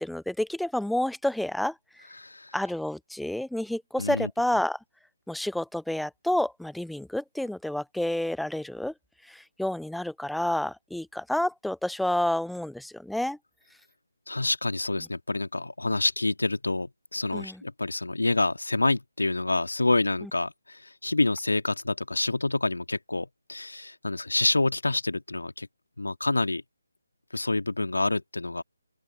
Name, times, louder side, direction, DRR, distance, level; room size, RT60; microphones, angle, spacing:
voice 1, 0.0-1.7 2.5-4.8 5.3-8.9 9.3-13.4 17.3-17.6, left 1 dB, ahead, 0.5 m, -29 dB
voice 2, 2.2-2.6 4.0-4.3 14.3-25.7 26.0-26.6 27.3-28.6, left 2 dB, 70° left, 2.3 m, -27 dB
open air
figure-of-eight pair, 150°, 0 cm